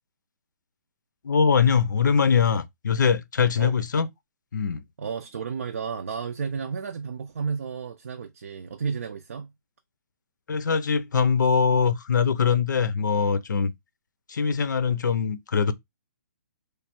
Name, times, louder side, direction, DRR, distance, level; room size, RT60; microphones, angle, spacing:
voice 1, 1.2-4.1 4.5-4.8 10.5-13.7 14.3-15.7, left 6 dB, 70° left, 0.6 m, -22 dB
voice 2, 5.0-9.5, right 6 dB, 45° right, 0.4 m, -32 dB
3.2 x 2.3 x 4.4 m
hypercardioid pair, 180°, 10 cm